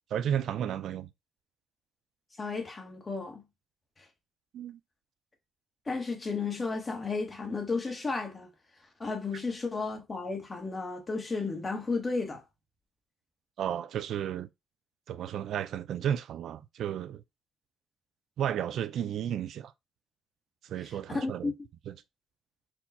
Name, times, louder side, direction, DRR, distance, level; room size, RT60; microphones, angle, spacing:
voice 1, 0.1-1.1 4.5-4.8 13.6-14.5 15.1-17.2 18.4-19.7 20.6-21.5 21.9-22.0, right 9 dB, 65° right, 0.3 m, -33 dB
voice 2, 2.4-3.4 4.0-4.1 5.9-8.5 9.0-12.4 21.1-21.5, left 4 dB, 25° left, 1.1 m, -33 dB
4.4 x 2.3 x 4.1 m
cardioid pair, 140°, 0 cm